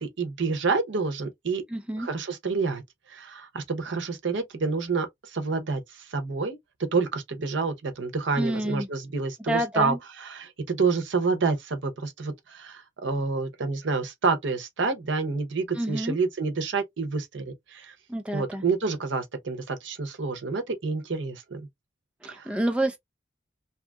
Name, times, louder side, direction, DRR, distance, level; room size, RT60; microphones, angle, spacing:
voice 1, 0.0-1.6 2.0-2.8 3.1-6.6 6.9-17.9 18.3-21.6 22.3-22.5, right 4 dB, 80° right, 0.7 m, -28 dB
voice 2, 1.7-2.1 8.4-8.9 9.5-10.0 15.8-16.2 18.1-18.6 22.2-23.0, right 1 dB, 5° right, 0.5 m, -28 dB
2.7 x 2.4 x 2.2 m
head